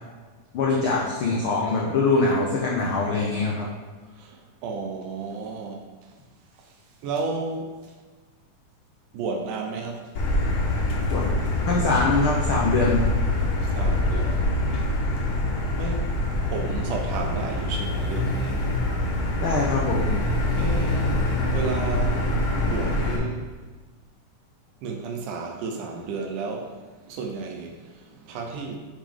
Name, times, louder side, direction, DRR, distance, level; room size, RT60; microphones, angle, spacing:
voice 1, 0.5-3.6 11.1-11.3 11.7-13.0 19.4-20.1, left 3 dB, 85° left, -3 dB, 1.1 m, -23 dB
voice 2, 4.2-5.9 7.0-7.7 9.1-10.1 13.7-14.6 15.0-15.1 15.8-16.2 16.5-18.7 20.6-21.2 21.5-22.3 22.7-23.4 24.8-26.8 27.1-28.8, right 4 dB, 85° right, 2 dB, 2.3 m, -32 dB
Motor vehicle (road), 10.2-23.2, left 1 dB, 65° left, 2.5 m, -25 dB
7.3 x 5.0 x 3.6 m, 1.4 s
omnidirectional pair, 3.6 m